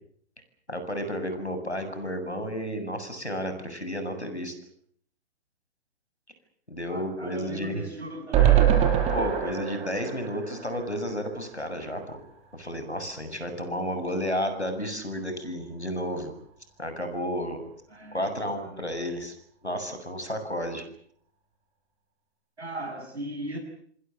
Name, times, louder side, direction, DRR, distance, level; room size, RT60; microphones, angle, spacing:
voice 1, 0.7-4.5 6.7-7.8 9.1-12.2 12.5-16.3 16.8-17.6 18.1-19.3 19.6-20.8, equal, 90° left, 8 dB, 7.2 m, -32 dB
voice 2, 6.9-8.7 17.9-18.2 18.6-18.8 22.6-23.6, right 1 dB, 80° right, 5 dB, 7.3 m, -38 dB
sound 1, 8.3-11.6 11.9-12.0 12.3-12.4, right 10 dB, 20° right, 5.7 m, -24 dB
27.0 x 22.0 x 8.0 m, 0.63 s
figure-of-eight pair, 120°, 32 cm